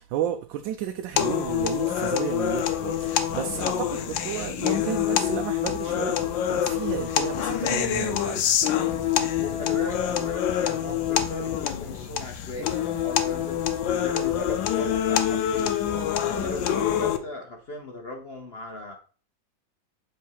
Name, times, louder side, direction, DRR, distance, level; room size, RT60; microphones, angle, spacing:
voice 1, 0.0-8.6, right 10 dB, 80° right, 1.3 m, -32 dB
sound 1, 1.2-17.2, left 10 dB, 75° left, 1.4 m, -26 dB
voice 2, 9.4-15.8 16.2-19.0, left 2 dB, 50° left, 0.7 m, -38 dB
7.7 x 3.5 x 4.6 m
omnidirectional pair, 2.1 m